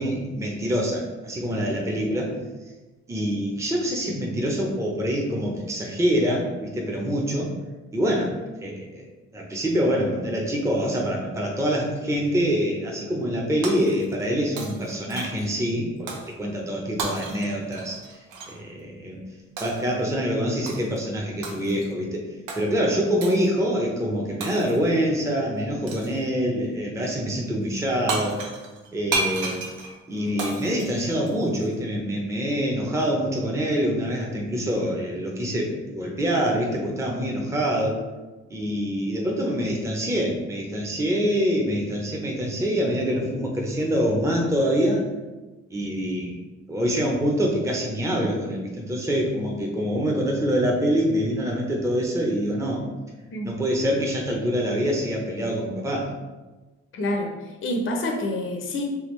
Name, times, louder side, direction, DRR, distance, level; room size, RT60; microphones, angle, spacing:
voice 1, 0.0-2.3 3.1-7.5 7.9-8.3 8.6-9.0 9.3-18.2 18.5-19.2 19.6-22.2 22.6-28.4 28.9-29.7 30.1-38.0 38.5-45.0 45.7-46.4 46.7-52.8 53.4-56.1, equal, 10° right, -1 dB, 0.7 m, -25 dB
Shatter, 13.6-14.3 14.6-15.5 16.1-16.3 17.0-18.6 19.6-19.9 20.7-21.0 21.4-21.9 22.5-22.6 23.2-23.5 24.4-24.9 25.9-26.2 27.8-27.9 28.1-31.7, right 3 dB, 90° right, 0.8 m, -33 dB
voice 2, 56.9-58.8, left 1 dB, 45° left, 1 dB, 0.6 m, -27 dB
3.5 x 3.4 x 3.1 m, 1.2 s
cardioid pair, 90°, 30 cm